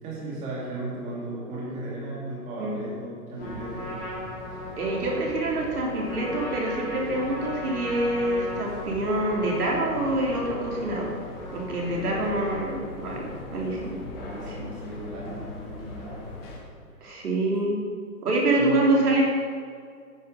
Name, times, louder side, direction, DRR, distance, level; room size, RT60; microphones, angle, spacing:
voice 1, 0.0-4.0 9.9-10.1 11.9-12.7 14.1-16.5 18.6-18.8, right 1 dB, 15° right, -7 dB, 2.5 m, -36 dB
sound 1, 3.4-16.6, left 2 dB, 40° left, 2.5 m, -40 dB
Trumpet, 3.4-12.1, equal, 20° left, 2.0 m, -38 dB
voice 2, 4.8-11.1 11.5-14.0 14.5-14.6 17.0-17.8 18.2-19.2, right 2 dB, 75° right, -2 dB, 3.3 m, -26 dB
10.0 x 9.7 x 5.3 m, 2.1 s
hypercardioid pair, 160°, 46 cm